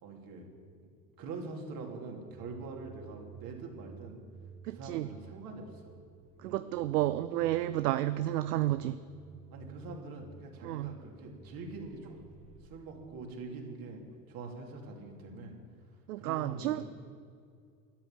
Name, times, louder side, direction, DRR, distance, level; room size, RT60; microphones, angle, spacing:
voice 1, 0.0-0.5 1.2-4.2 4.7-5.9 6.4-6.7 9.5-12.2 12.6-14.0 14.3-15.5 16.2-16.8, right 3 dB, 45° right, 1 dB, 2.9 m, -44 dB
sound 1, 2.2-12.7, right 5 dB, 15° right, 1.8 m, -54 dB
voice 2, 4.6-5.1 6.4-9.0 10.6-10.9 16.1-16.8, right 14 dB, 70° right, 13 dB, 0.6 m, -31 dB
13.0 x 9.4 x 7.4 m, 2.2 s
hypercardioid pair, 80°, 49 cm